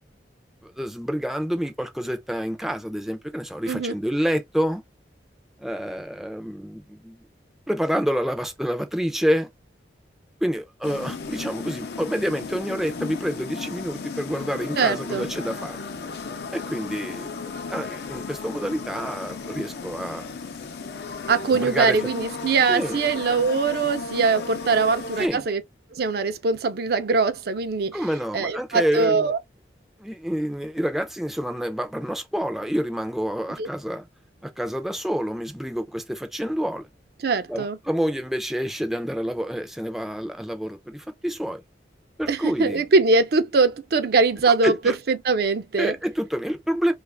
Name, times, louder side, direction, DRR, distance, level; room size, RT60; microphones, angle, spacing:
voice 1, 0.6-4.8 5.6-7.2 7.7-9.5 10.4-15.8 16.5-20.3 21.5-22.0 22.7-23.0 25.2-25.4 27.9-29.3 30.0-34.1 34.4-36.9 37.5-41.6 42.2-42.8 44.5-44.9 45.8-46.9, equal, ahead, 0.4 m, -28 dB
sound 1, 10.8-25.3, left 4 dB, 60° left, 0.5 m, -35 dB
voice 2, 14.8-15.3 21.3-25.6 25.9-27.9 28.3-29.4 33.6-33.7 37.2-37.8 42.3-45.9, right 4 dB, 60° right, 0.5 m, -22 dB
3.0 x 2.4 x 3.3 m
head